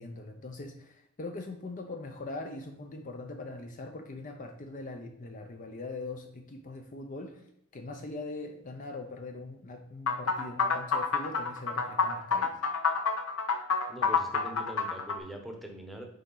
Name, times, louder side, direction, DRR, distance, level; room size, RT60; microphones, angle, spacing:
voice 1, 0.0-7.4 7.7-12.6, left 2 dB, 40° left, 5 dB, 0.6 m, -41 dB
sound 1, 10.1-15.2, left 5 dB, 85° left, 0.7 m, -28 dB
voice 2, 13.9-16.1, equal, ahead, 2 dB, 0.9 m, -43 dB
6.4 x 4.8 x 3.9 m, 0.77 s
head